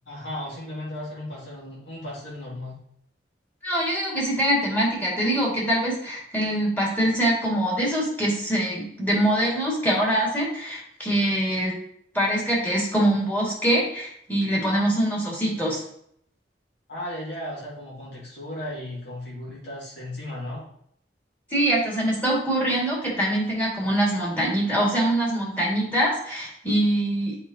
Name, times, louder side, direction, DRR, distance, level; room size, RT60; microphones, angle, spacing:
voice 1, 0.0-2.8 16.9-20.6, left 1 dB, 80° left, -6 dB, 2.2 m, -35 dB
voice 2, 3.6-11.7 12.1-15.8 21.5-27.4, right 1 dB, 10° left, -4 dB, 2.1 m, -24 dB
8.1 x 4.8 x 2.8 m, 0.68 s
head